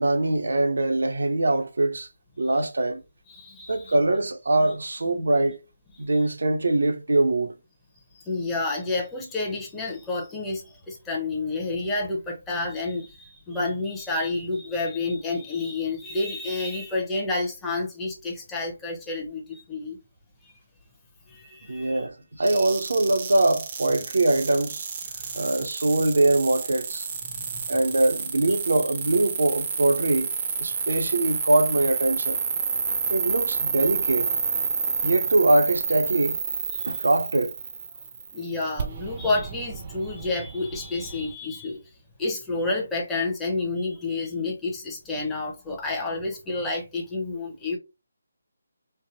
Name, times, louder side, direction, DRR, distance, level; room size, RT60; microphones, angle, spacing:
voice 1, 0.0-2.1 2.4-3.0 3.7-5.6 6.0-7.5 21.6-24.9 25.3-27.1 27.7-30.3 30.6-32.4 33.1-34.3 35.0-36.4 36.9-37.5, right 2 dB, 75° right, 0.6 m, -23 dB
voice 2, 3.3-3.9 8.2-20.0 20.4-20.5 21.3-22.1 22.5-22.7 25.1-25.4 27.3-27.7 36.7-36.9 38.3-41.8 42.2-47.8, left 3 dB, 10° left, 0.7 m, -30 dB
sound 1, 22.4-41.3, right 6 dB, 35° right, 0.5 m, -30 dB
3.3 x 2.0 x 2.8 m
figure-of-eight pair, 160°, 0 cm